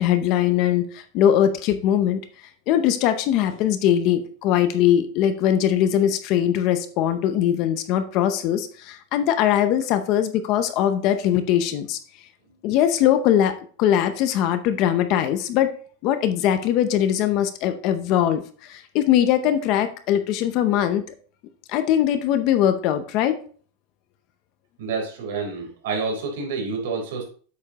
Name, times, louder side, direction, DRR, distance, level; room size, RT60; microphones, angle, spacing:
voice 1, 0.0-2.2 2.7-12.0 12.6-15.7 16.0-21.0 21.7-23.4, left 10 dB, 35° left, 10 dB, 0.7 m, -21 dB
voice 2, 24.8-27.2, right 4 dB, 65° right, 2 dB, 3.7 m, -28 dB
8.3 x 6.9 x 3.0 m, 0.42 s
supercardioid pair, 175°, 0 cm